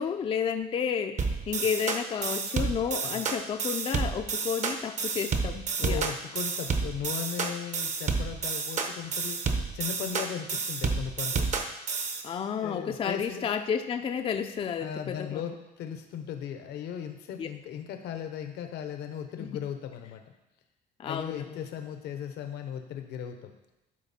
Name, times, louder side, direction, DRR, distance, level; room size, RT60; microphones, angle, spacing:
voice 1, 0.0-6.0 12.2-15.5 17.4-17.5 19.4-19.5 21.0-21.6, left 7 dB, 35° left, 7 dB, 0.4 m, -31 dB
sound 1, 1.2-12.2, right 5 dB, 45° right, 0.9 m, -30 dB
voice 2, 5.8-9.4 9.7-11.5 12.6-13.5 14.8-20.2 21.0-23.5, left 9 dB, 80° left, 6 dB, 0.9 m, -37 dB
12.0 x 4.3 x 4.3 m, 0.96 s
cardioid pair, 110°, 17 cm